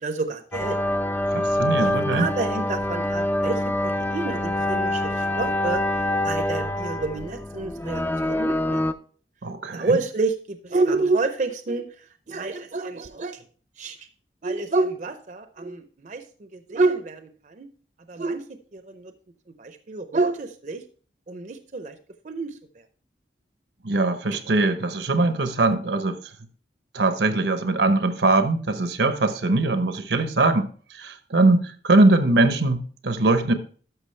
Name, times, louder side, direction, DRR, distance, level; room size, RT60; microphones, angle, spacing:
voice 1, 0.0-0.8 1.8-5.8 6.2-8.8 9.7-13.4 13.8-14.1 14.4-17.7 18.1-18.4 18.7-19.1 19.6-20.8 21.3-22.0 22.2-22.6 24.3-24.4, right 3 dB, 45° right, 0.6 m, -28 dB
sound 1, 0.5-8.9, left 1 dB, 10° left, 0.3 m, -25 dB
voice 2, 1.3-2.3 9.4-10.0 23.8-26.2 26.9-30.7 31.0-33.5, right 2 dB, 85° right, 0.9 m, -21 dB
12.0 x 5.8 x 3.2 m
head